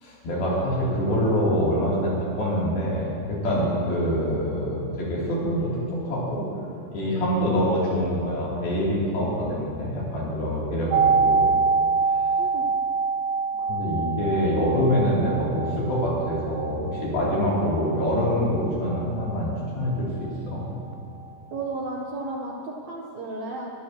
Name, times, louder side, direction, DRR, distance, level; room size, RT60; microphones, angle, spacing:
voice 1, 0.0-6.4 6.9-11.5 12.1-12.2 13.7-20.7, equal, 80° left, -6 dB, 4.9 m, -25 dB
sound 1, 10.9-20.7 20.9-21.0, right 5 dB, 80° right, 2.4 m, -26 dB
voice 2, 12.4-12.7 21.5-23.7, right 2 dB, 65° right, -2 dB, 1.9 m, -33 dB
22.0 x 12.0 x 2.9 m, 3.0 s
omnidirectional pair, 4.2 m